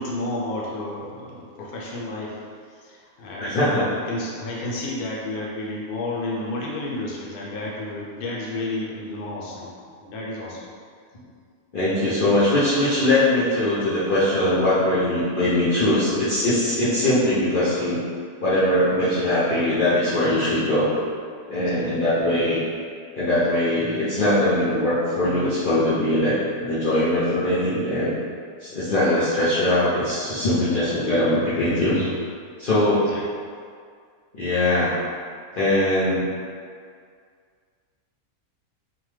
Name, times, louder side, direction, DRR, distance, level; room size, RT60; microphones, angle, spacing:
voice 1, 0.0-9.7 10.0-10.6 21.5-22.0 32.9-33.2, left 2 dB, 85° left, -4 dB, 1.1 m, -32 dB
voice 2, 3.4-3.8 11.7-18.0 18.4-20.9 21.5-22.6 23.1-28.1 28.6-32.1 32.6-33.2 34.3-34.9 35.6-36.2, left 1 dB, 70° left, -11 dB, 0.5 m, -21 dB
2.8 x 2.1 x 3.1 m, 2.1 s
omnidirectional pair, 1.6 m